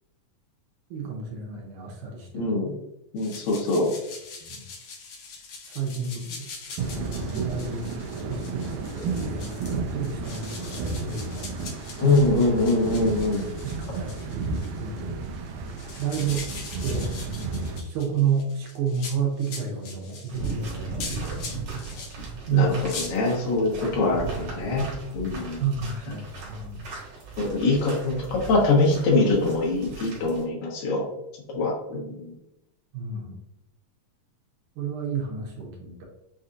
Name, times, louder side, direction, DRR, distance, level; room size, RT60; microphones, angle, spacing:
voice 1, 0.9-2.5 4.4-4.6 5.7-8.0 8.3-11.5 12.0-12.2 13.6-15.2 16.0-16.5 16.8-17.1 17.8-21.4 22.5-22.7 25.6-26.8 32.9-33.4 34.8-36.0, right 6 dB, 75° right, 0 dB, 2.2 m, -30 dB
voice 2, 2.3-2.7 3.1-3.9 12.0-13.5 22.5-22.8 23.1-24.9 25.1-25.6 27.4-31.0 31.6-32.3, left 2 dB, 85° left, -3 dB, 2.9 m, -23 dB
sound 1, 3.2-22.1 22.6-23.1, left 4 dB, 70° left, 1.4 m, -42 dB
sound 2, 6.8-17.8, right 4 dB, 90° right, 1.6 m, -32 dB
sound 3, 20.3-30.4, right 4 dB, 60° right, 2.3 m, -37 dB
6.3 x 2.8 x 2.5 m, 0.86 s
omnidirectional pair, 3.8 m